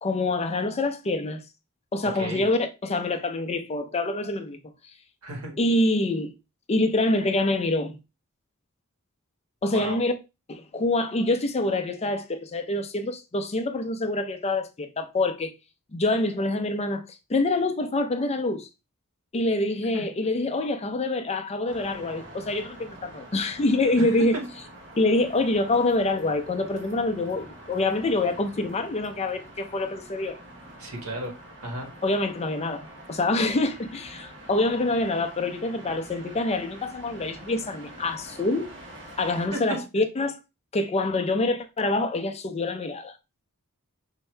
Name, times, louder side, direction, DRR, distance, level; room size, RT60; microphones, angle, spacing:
voice 1, 0.0-1.4 1.9-4.6 5.6-6.3 6.7-7.9 9.6-10.1 10.5-15.5 15.9-17.0 17.3-18.7 19.3-24.4 25.0-30.4 32.0-38.7 39.2-40.4 40.7-43.1, left 2 dB, 30° left, 0.5 m, -26 dB
voice 2, 5.2-5.6 9.7-10.0 19.9-20.0 24.0-24.4 30.8-31.3 31.6-31.9 39.5-39.8, right 1 dB, 90° right, 1.6 m, -33 dB
sound 1, 21.7-39.5, right 1 dB, 60° right, 1.7 m, -46 dB
5.4 x 2.7 x 3.3 m
head